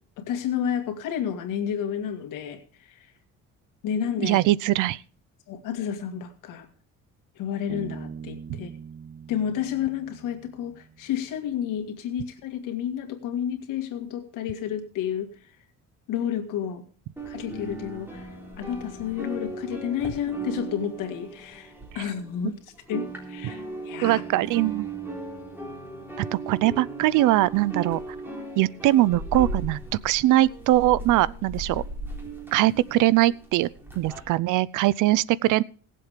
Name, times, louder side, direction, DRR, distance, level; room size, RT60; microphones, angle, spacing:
voice 1, 0.2-2.6 2.9-3.0 3.8-4.4 5.5-6.7 7.4-8.7 9.3-15.3 16.1-16.8 17.3-18.2 18.6-22.6 22.9-24.2, left 9 dB, 85° left, 2.0 m, -30 dB
voice 2, 4.2-5.0 24.0-24.9 26.5-28.0 28.6-31.8 32.5-33.7 34.0-35.6, right 16 dB, 80° right, 0.6 m, -21 dB
Bass guitar, 7.7-11.2, right 7 dB, 30° right, 0.6 m, -42 dB
sound 1, 17.2-22.5 22.7-34.2, right 2 dB, 5° right, 3.7 m, -37 dB
17.5 x 7.6 x 5.0 m
cardioid pair, 145°, 31 cm